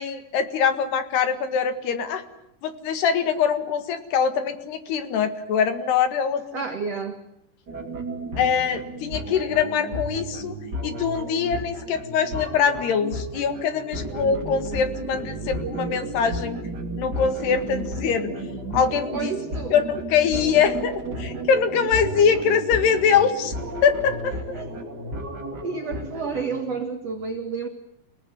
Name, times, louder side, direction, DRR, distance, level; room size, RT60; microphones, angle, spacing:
voice 1, 0.0-2.2 2.6-6.6 8.4-10.5 10.8-16.6 17.0-18.3 18.7-19.3 19.7-23.5 23.8-24.3, left 7 dB, 65° left, 10 dB, 3.5 m, -23 dB
voice 2, 6.5-7.2 19.1-19.8 24.5-24.7 25.6-27.7, right 5 dB, 65° right, 6 dB, 1.6 m, -30 dB
sound 1, 7.7-26.6, right 1 dB, 30° right, 2.5 m, -33 dB
29.5 x 19.0 x 9.7 m, 0.77 s
omnidirectional pair, 5.6 m